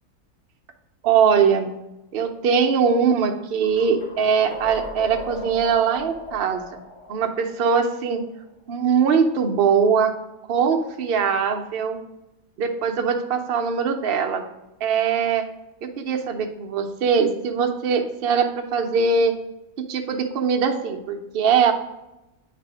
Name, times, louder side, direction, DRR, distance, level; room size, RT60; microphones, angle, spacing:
voice 1, 1.0-1.7 2.1-6.8 7.1-8.2 8.7-10.1 10.5-12.0 12.6-14.4 14.8-15.4 15.8-19.3 19.9-21.7, right 6 dB, 55° right, 4 dB, 0.6 m, -21 dB
sound 1, 3.6-8.5, left 2 dB, 20° left, 1.6 m, -38 dB
8.3 x 3.4 x 4.8 m, 0.97 s
omnidirectional pair, 1.6 m